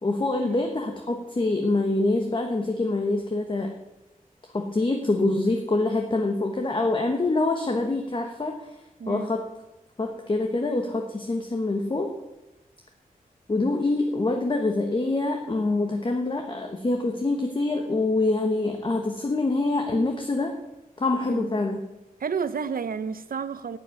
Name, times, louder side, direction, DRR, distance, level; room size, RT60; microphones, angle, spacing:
voice 1, 0.0-3.7 4.5-8.7 9.1-9.4 10.0-12.1 13.5-20.6 21.0-21.8, left 2 dB, 35° left, 3 dB, 1.2 m, -25 dB
voice 2, 22.2-23.8, right 6 dB, 80° right, 13 dB, 0.7 m, -31 dB
12.0 x 7.6 x 9.6 m, 0.99 s
wide cardioid pair, 120°, 15 cm